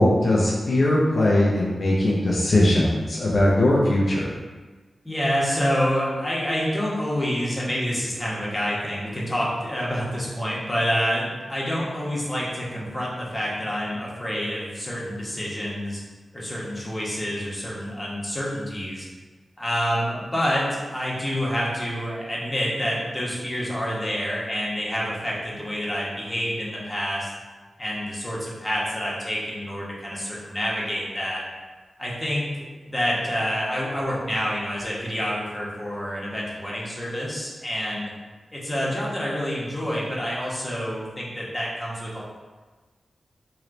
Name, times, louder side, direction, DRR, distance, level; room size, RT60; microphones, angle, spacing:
voice 1, 0.0-4.3, left 1 dB, 65° left, -5 dB, 0.7 m, -20 dB
voice 2, 5.0-16.0 16.3-19.1 19.6-27.3 27.8-31.4 32.0-32.5 32.8-38.1 38.5-42.2, equal, 20° left, -5 dB, 1.3 m, -27 dB
3.2 x 2.9 x 3.9 m, 1.3 s
cardioid pair, 40°, 0 cm